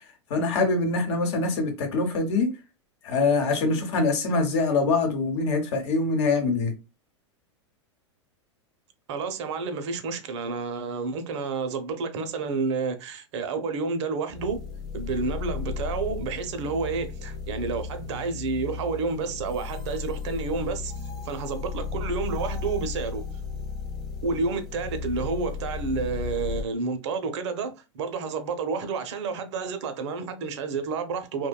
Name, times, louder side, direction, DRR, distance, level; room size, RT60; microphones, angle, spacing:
voice 1, 0.3-2.5 3.0-6.7, left 3 dB, 65° left, 0.9 m, -24 dB
voice 2, 9.1-14.6 14.9-20.9 21.2-23.2 24.2-31.5, right 4 dB, 65° right, 0.6 m, -30 dB
sound 1, 14.3-26.6, left 5 dB, 25° left, 0.9 m, -34 dB
2.6 x 2.1 x 2.2 m
hypercardioid pair, 105°, 16 cm